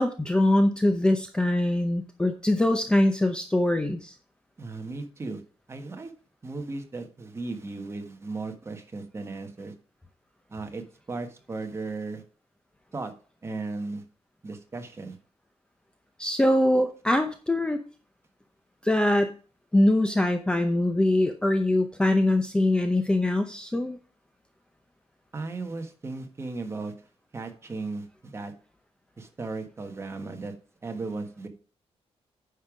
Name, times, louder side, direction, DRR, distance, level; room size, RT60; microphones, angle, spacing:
voice 1, 0.0-4.1 16.2-17.8 18.8-19.3 19.7-24.0, left 1 dB, 10° left, 6 dB, 0.7 m, -23 dB
voice 2, 4.6-5.4 5.7-6.1 6.4-9.7 10.5-12.2 12.9-13.1 13.4-14.0 14.4-15.2 25.3-26.9 27.3-28.5 29.2-30.5 30.8-31.5, right 3 dB, 25° right, 5 dB, 1.4 m, -36 dB
9.8 x 5.5 x 5.0 m, 0.39 s
wide cardioid pair, 160°, 11 cm